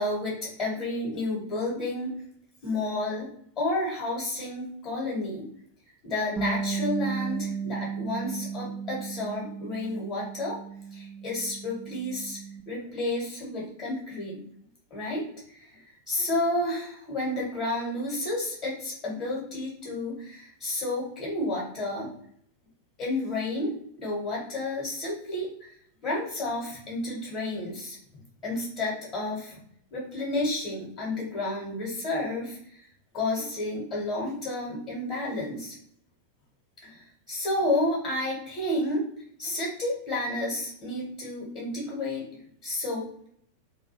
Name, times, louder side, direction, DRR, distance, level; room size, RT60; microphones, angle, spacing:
voice 1, 0.0-2.1 2.6-3.3 3.6-5.5 6.0-10.6 10.9-12.4 12.7-14.4 14.9-22.1 23.0-23.7 24.0-28.0 28.4-29.6 29.9-32.9 33.1-35.8 36.8-39.0 39.4-43.3, left 2 dB, 35° left, -5 dB, 0.9 m, -31 dB
Bass guitar, 6.4-12.6, right 6 dB, 15° right, 0.4 m, -35 dB
2.2 x 2.2 x 2.8 m, 0.66 s
figure-of-eight pair, 90°, 0 cm